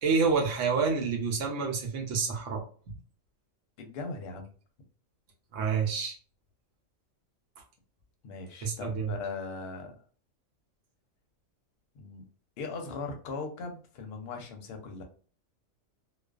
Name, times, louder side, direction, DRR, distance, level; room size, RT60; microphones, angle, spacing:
voice 1, 0.0-2.6 5.5-6.2 8.6-9.1, right 5 dB, 75° right, 1 dB, 0.9 m, -28 dB
voice 2, 3.8-4.5 8.2-9.9 11.9-12.2 12.6-15.0, left 4 dB, 60° left, 3 dB, 0.7 m, -39 dB
2.4 x 2.2 x 2.3 m, 0.41 s
omnidirectional pair, 1.3 m